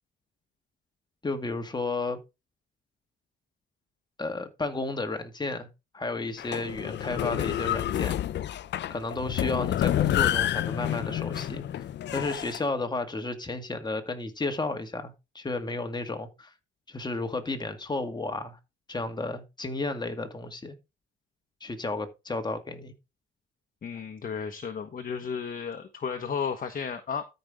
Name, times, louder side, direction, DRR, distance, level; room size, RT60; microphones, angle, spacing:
voice 1, 1.2-2.2 4.2-5.7 5.9-8.2 8.9-11.6 12.1-16.5 16.9-18.6 18.9-20.8 21.6-22.9, left 3 dB, 20° left, 2.0 m, -32 dB
sound 1, 6.4-12.6, left 12 dB, 60° left, 0.6 m, -29 dB
voice 2, 23.8-27.2, left 6 dB, 45° left, 1.4 m, -33 dB
13.0 x 5.5 x 3.7 m
cardioid pair, 90°, 20 cm